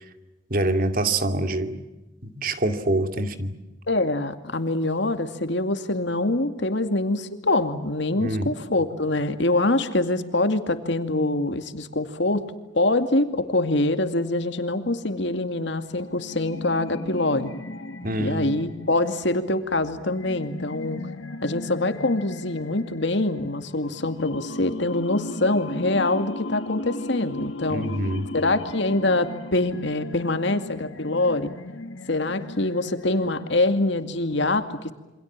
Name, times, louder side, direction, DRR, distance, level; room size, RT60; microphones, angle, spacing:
voice 1, 0.5-1.8 2.2-3.5 8.2-8.6 18.0-18.5 27.7-28.3, right 1 dB, 45° right, 8 dB, 2.5 m, -25 dB
voice 2, 3.9-17.5 18.2-21.0 21.4-27.9 28.3-31.5 32.1-34.9, left 2 dB, 60° left, 8 dB, 2.3 m, -24 dB
sound 1, 15.9-33.9, left 2 dB, 75° left, 1.7 m, -37 dB
28.5 x 25.5 x 7.5 m, 1.1 s
head